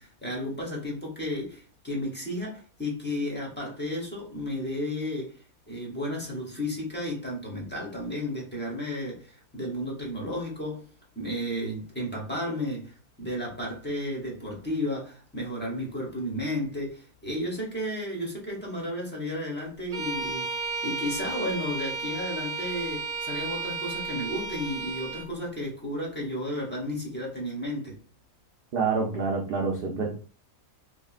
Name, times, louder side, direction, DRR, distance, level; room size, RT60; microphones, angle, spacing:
voice 1, 0.0-10.9 11.1-28.0, left 1 dB, 15° left, 0.4 m, -33 dB
Bowed string instrument, 19.9-25.3, right 4 dB, 45° right, 0.7 m, -33 dB
voice 2, 28.7-30.1, right 4 dB, 90° right, 0.5 m, -27 dB
3.4 x 2.1 x 2.4 m
omnidirectional pair, 1.6 m